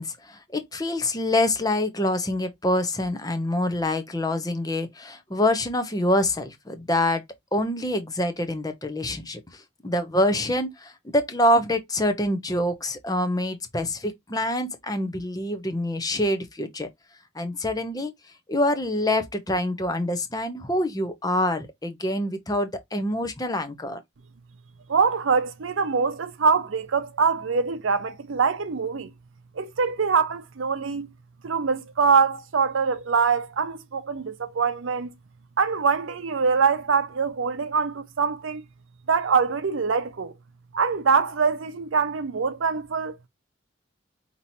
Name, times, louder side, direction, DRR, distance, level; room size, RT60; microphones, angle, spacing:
voice 1, 0.0-7.2 7.5-16.9 17.3-18.1 18.5-24.0, left 1 dB, 20° left, 0.8 m, -26 dB
voice 2, 24.9-29.1 29.6-31.1 31.4-35.1 35.6-38.6 39.1-40.3 40.7-43.1, right 5 dB, 75° right, 0.6 m, -24 dB
5.5 x 3.0 x 2.7 m
head